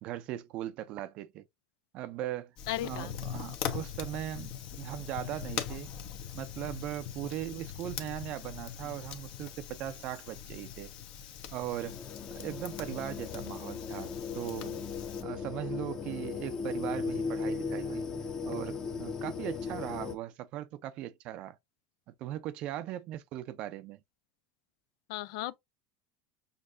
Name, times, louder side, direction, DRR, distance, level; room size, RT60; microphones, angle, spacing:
voice 1, 0.0-1.4 1.9-2.5 2.8-5.9 6.3-10.9 11.5-12.0 12.3-14.8 15.2-18.0 18.5-21.6 22.1-24.0, right 13 dB, 50° right, 0.5 m, -39 dB
Fire, 2.6-15.2, left 9 dB, 50° left, 0.9 m, -41 dB
voice 2, 2.7-3.1 25.1-25.6, left 15 dB, 70° left, 0.3 m, -35 dB
sound 1, 11.8-20.2, left 5 dB, 25° left, 0.7 m, -37 dB
6.5 x 2.7 x 2.5 m
supercardioid pair, 115°, 2 cm